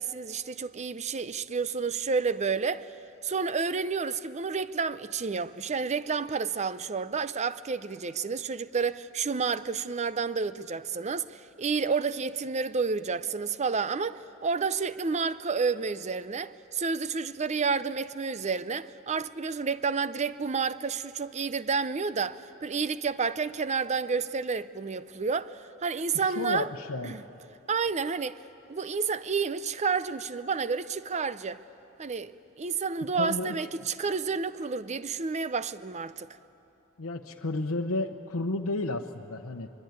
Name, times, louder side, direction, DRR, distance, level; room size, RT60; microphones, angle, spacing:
voice 1, 0.0-2.9 3.2-26.7 27.0-27.2 27.7-28.4 28.7-31.6 32.0-36.3, right 5 dB, 35° right, 0.6 m, -30 dB
voice 2, 26.1-27.2 33.2-33.7 37.0-39.7, left 2 dB, 80° left, 0.9 m, -32 dB
24.5 x 23.5 x 9.5 m
head